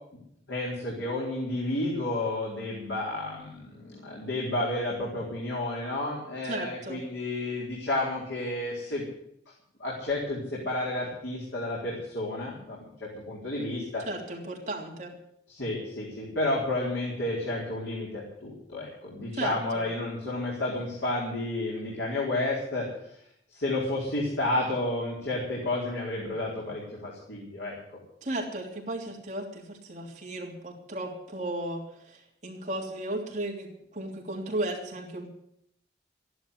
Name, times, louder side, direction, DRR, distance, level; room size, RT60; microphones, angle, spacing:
voice 1, 0.5-9.0 9.8-14.0 15.5-22.9 23.5-27.7, left 2 dB, 85° left, -4 dB, 4.3 m, -31 dB
voice 2, 6.4-7.0 14.0-15.2 19.3-19.8 28.2-35.3, right 1 dB, 40° right, -1 dB, 3.1 m, -35 dB
14.0 x 11.5 x 8.2 m, 0.72 s
head